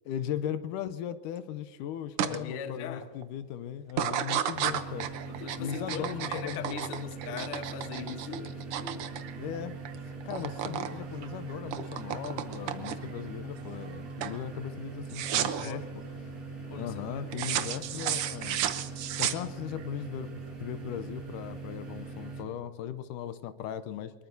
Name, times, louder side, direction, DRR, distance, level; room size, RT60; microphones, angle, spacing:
voice 1, 0.1-5.1 5.6-7.1 9.4-9.7 10.3-15.8 16.8-18.6 19.2-24.1, left 10 dB, 85° left, 11 dB, 2.2 m, -38 dB
sound 1, 2.2-2.4 2.8-3.2 3.9-10.0 10.2-10.9 11.2-13.2 13.7-14.0 14.2-14.4 15.1-15.7 17.3-19.8, right 10 dB, 90° right, 1.2 m, -33 dB
voice 2, 2.3-3.1 5.3-9.1 15.5-15.9 16.7-17.8, left 6 dB, 55° left, 7 dB, 1.7 m, -41 dB
sound 2, 4.5-22.4, right 4 dB, 55° right, 5.5 m, -42 dB
23.5 x 21.5 x 2.7 m, 1.5 s
omnidirectional pair, 3.7 m